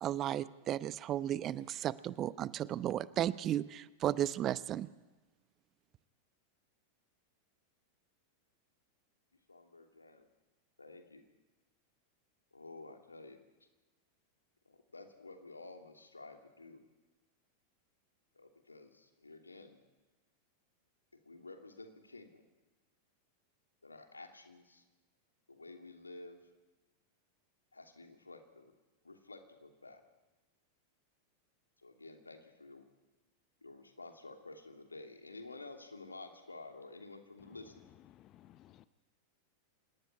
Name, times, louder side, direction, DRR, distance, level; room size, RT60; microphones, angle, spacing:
voice 1, 0.0-4.9, right 11 dB, 30° right, 18 dB, 0.8 m, -34 dB
voice 2, 9.5-10.2 10.8-11.2 12.5-13.4 14.6-16.8 18.3-19.8 21.2-22.5 23.8-24.8 25.5-26.4 27.7-28.7 29.0-30.0 31.8-32.8 33.6-37.7, left 3 dB, 80° left, 4 dB, 3.0 m, -51 dB
voice 3, 38.1-38.9, left 13 dB, 35° left, 15 dB, 0.7 m, -59 dB
26.0 x 19.0 x 9.8 m, 1.2 s
figure-of-eight pair, 90°, 0 cm